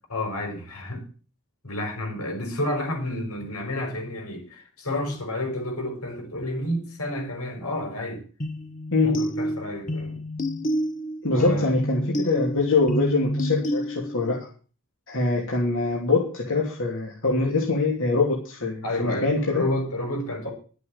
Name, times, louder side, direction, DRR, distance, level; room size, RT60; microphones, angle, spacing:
voice 1, 0.1-1.0 1.6-8.2 9.0-10.2 11.3-11.7 18.8-20.5, left 1 dB, 85° left, 5.6 m, -30 dB
sound 1, 8.4-14.4, equal, 35° left, 1.4 m, -29 dB
voice 2, 11.2-14.4 15.1-19.6, left 3 dB, 60° left, 3.0 m, -24 dB
12.0 x 8.2 x 7.2 m
head